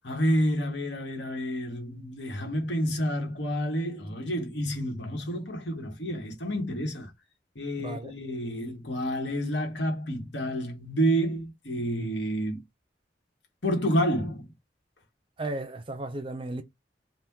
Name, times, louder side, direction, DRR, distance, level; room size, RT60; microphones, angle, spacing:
voice 1, 0.0-7.1 7.5-12.6 13.6-14.5, equal, 80° left, 1.4 m, -29 dB
voice 2, 7.8-8.1 15.4-16.6, right 2 dB, 30° right, 0.6 m, -34 dB
2.9 x 2.5 x 3.6 m
head